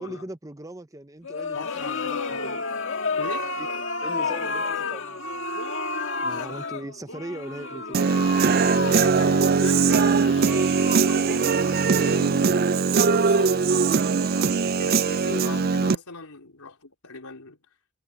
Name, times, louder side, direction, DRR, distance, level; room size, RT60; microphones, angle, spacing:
voice 1, 0.0-2.6 3.1-3.7 4.0-5.4 6.2-8.0, right 1 dB, 15° right, 0.7 m, -40 dB
sound 1, 1.2-12.2, left 3 dB, 55° left, 2.0 m, -31 dB
voice 2, 1.5-2.4 3.2-3.5 6.3-6.7 8.7-10.3 10.8-12.5 12.9-13.6 14.2-17.6, left 3 dB, 85° left, 4.1 m, -39 dB
Human voice / Guitar, 7.9-16.0, right 5 dB, 45° right, 0.4 m, -21 dB
head